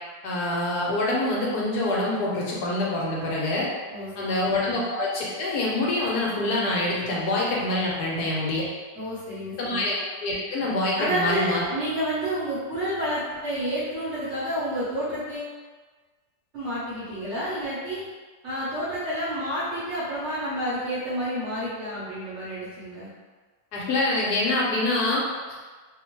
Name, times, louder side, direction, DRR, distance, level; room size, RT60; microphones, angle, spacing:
voice 1, 0.2-3.7 4.2-8.7 9.6-11.6 23.7-25.3, left 2 dB, 75° left, -4 dB, 1.1 m, -25 dB
voice 2, 3.9-4.8 9.0-9.8 11.0-15.5 16.5-18.0 18.4-23.1, equal, 55° right, -9 dB, 0.8 m, -30 dB
2.9 x 2.0 x 2.9 m, 1.4 s
omnidirectional pair, 1.8 m